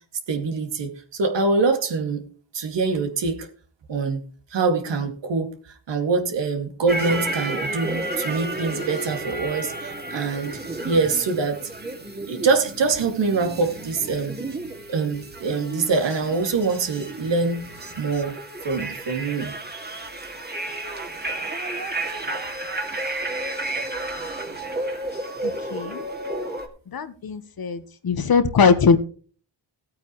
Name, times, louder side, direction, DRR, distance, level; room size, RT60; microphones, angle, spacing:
voice 1, 0.3-2.2 2.5-3.5 3.9-4.2 4.5-10.6 10.8-11.6 12.2-14.4 14.9-17.7 18.0-18.4 18.6-19.6, right 4 dB, 70° right, 5 dB, 2.4 m, -24 dB
sound 1, 6.9-26.7, right 2 dB, 20° right, 2.2 m, -32 dB
voice 2, 25.4-26.0 26.9-29.0, left 5 dB, 50° left, 11 dB, 1.3 m, -20 dB
16.5 x 8.9 x 3.2 m, 0.40 s
cardioid pair, 105°, 45 cm